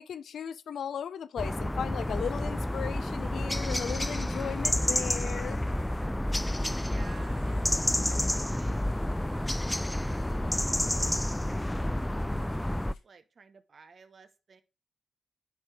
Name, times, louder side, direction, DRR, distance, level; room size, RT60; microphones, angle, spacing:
voice 1, 0.0-5.6, left 8 dB, 70° left, 0.6 m, -36 dB
sound 1, 1.4-12.9, left 1 dB, 10° left, 0.4 m, -30 dB
sound 2, 2.0-13.0, left 6 dB, 90° left, 1.9 m, -61 dB
sound 3, 2.3-11.1, right 1 dB, 25° right, 1.5 m, -55 dB
voice 2, 5.5-6.2 6.9-8.8 9.3-11.4 11.9-14.6, right 5 dB, 55° right, 1.2 m, -55 dB
10.5 x 4.8 x 3.5 m
supercardioid pair, 45°, 0 cm